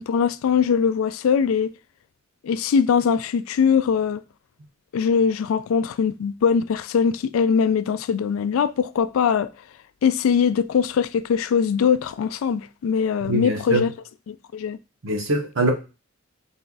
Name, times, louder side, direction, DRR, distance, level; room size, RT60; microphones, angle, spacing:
voice 1, 0.0-1.7 2.4-4.2 4.9-9.5 10.0-13.9 14.3-14.8, left 6 dB, 80° left, 0.3 m, -21 dB
voice 2, 13.3-13.8 15.0-15.7, right 2 dB, 70° right, 0.9 m, -23 dB
4.3 x 2.3 x 3.8 m
head